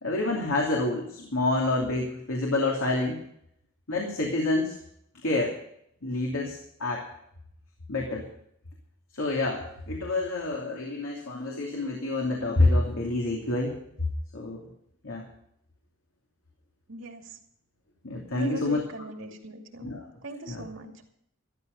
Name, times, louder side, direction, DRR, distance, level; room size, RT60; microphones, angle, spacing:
voice 1, 0.0-3.2 3.9-4.8 5.2-5.5 6.0-7.0 7.9-8.2 9.1-13.7 14.3-14.6 15.0-15.2 18.0-18.8 19.8-20.0 20.5-20.6, left 2 dB, 85° left, -1 dB, 2.8 m, -27 dB
voice 2, 16.9-17.4 18.3-20.0 20.2-21.1, right 2 dB, 70° right, 3 dB, 2.5 m, -40 dB
13.5 x 13.0 x 5.4 m, 0.72 s
head